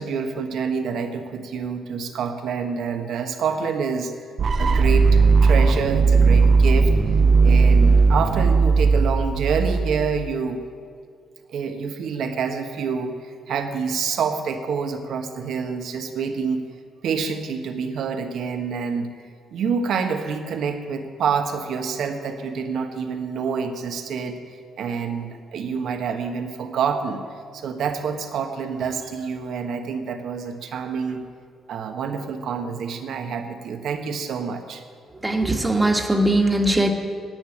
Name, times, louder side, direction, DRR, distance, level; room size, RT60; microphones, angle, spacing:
voice 1, 0.0-4.1 4.6-6.9 7.4-10.6 11.5-13.1 13.5-16.6 17.0-19.1 19.5-24.4 24.8-27.2 27.5-31.2 31.7-34.8, right 6 dB, 70° right, 6 dB, 1.4 m, -27 dB
sound 1, 4.4-10.3, right 4 dB, 50° right, 0.7 m, -17 dB
voice 2, 35.2-36.9, right 1 dB, 15° right, 4 dB, 1.6 m, -20 dB
10.5 x 9.0 x 9.2 m, 2.2 s
cardioid pair, 90°, 0 cm